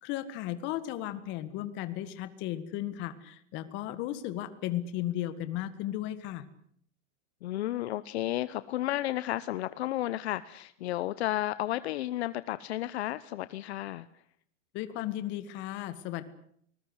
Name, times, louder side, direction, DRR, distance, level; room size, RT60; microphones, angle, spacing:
voice 1, 0.0-6.4 14.7-16.2, left 13 dB, 30° left, 13 dB, 1.8 m, -35 dB
voice 2, 7.4-14.1, left 14 dB, 60° left, 15 dB, 0.9 m, -32 dB
25.5 x 20.5 x 8.1 m, 0.66 s
supercardioid pair, 165°, 36 cm